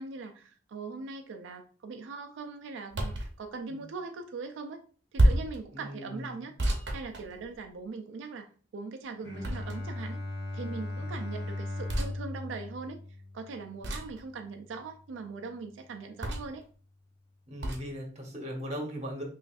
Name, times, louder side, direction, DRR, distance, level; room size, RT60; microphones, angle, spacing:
voice 1, 0.0-4.8 5.1-6.5 6.9-8.5 8.7-10.2 10.5-13.0 13.3-16.6, right 4 dB, 80° right, 5 dB, 0.4 m, -41 dB
sound 1, 2.9-3.3 5.2-5.6 6.6-7.8 9.4-10.0 11.9-12.1 13.8-14.2 16.2-16.6 17.6-17.9, right 1 dB, 65° right, 0.7 m, -28 dB
voice 2, 5.7-6.4 11.0-11.1 17.5-19.2, equal, 35° right, 1 dB, 0.9 m, -39 dB
Bowed string instrument, 9.2-14.9, left 2 dB, 15° left, 1.7 m, -38 dB
5.6 x 2.5 x 2.3 m, 0.42 s
head